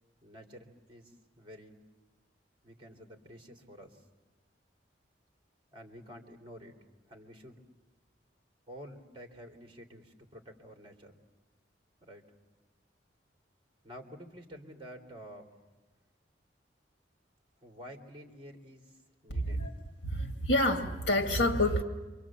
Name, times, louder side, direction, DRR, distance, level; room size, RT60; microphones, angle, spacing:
voice 1, 0.2-1.7 2.6-4.1 5.7-6.8 7.1-7.6 8.7-11.2 12.0-12.3 13.8-15.6 17.6-19.7, equal, 30° right, 2 dB, 3.0 m, -50 dB
voice 2, 19.3-19.7 20.0-21.8, left 1 dB, 65° left, 4 dB, 1.9 m, -28 dB
28.5 x 24.5 x 7.4 m, 1.2 s
head